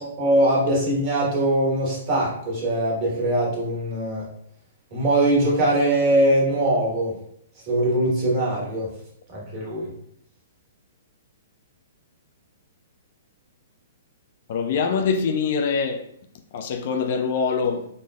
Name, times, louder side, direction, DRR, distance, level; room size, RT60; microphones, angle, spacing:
voice 1, 0.2-4.3 4.9-7.1 7.7-8.9 9.3-9.9, right 1 dB, 35° right, 1.4 m, -21 dB
voice 2, 14.5-16.1 16.5-17.9, left 5 dB, 45° left, 0.3 m, -24 dB
4.6 x 2.3 x 2.3 m
figure-of-eight pair, 115°, 0 cm